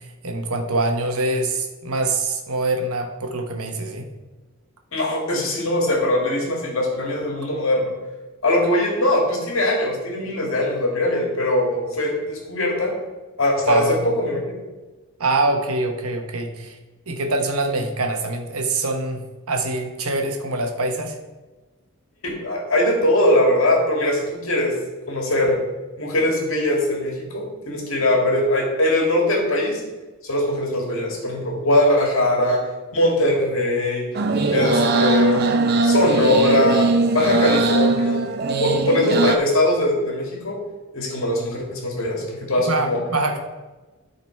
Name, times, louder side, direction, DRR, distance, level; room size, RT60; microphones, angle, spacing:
voice 1, 0.0-4.1 13.7-14.2 15.2-16.8 17.1-19.2 19.5-21.2 42.7-43.4, right 2 dB, 85° right, 4 dB, 1.2 m, -24 dB
voice 2, 4.9-7.9 8.4-12.9 13.4-13.8 14.2-14.6 22.4-24.7 25.1-25.6 26.0-29.8 30.2-32.6 32.9-34.1 34.5-38.2 38.6-40.6 40.9-43.0, left 1 dB, 65° left, -1 dB, 1.9 m, -21 dB
sound 1, 34.1-39.4, right 3 dB, 45° right, 0.6 m, -20 dB
12.0 x 4.0 x 4.4 m, 1.2 s
head